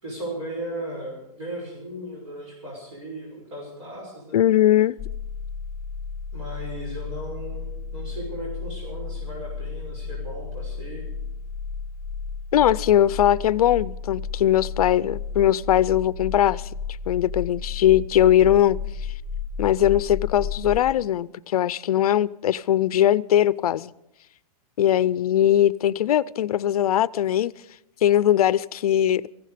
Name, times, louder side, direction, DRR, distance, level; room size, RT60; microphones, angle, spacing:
voice 1, 0.0-4.4 6.3-11.1, right 1 dB, 55° right, 5.9 m, -36 dB
voice 2, 4.3-5.0 12.5-16.7 17.1-18.8 19.6-23.9 24.8-27.5 28.0-29.2, left 11 dB, 75° left, 0.5 m, -20 dB
sound 1, 5.0-20.8, left 5 dB, ahead, 0.6 m, -33 dB
18.5 x 15.5 x 5.0 m
supercardioid pair, 180°, 19 cm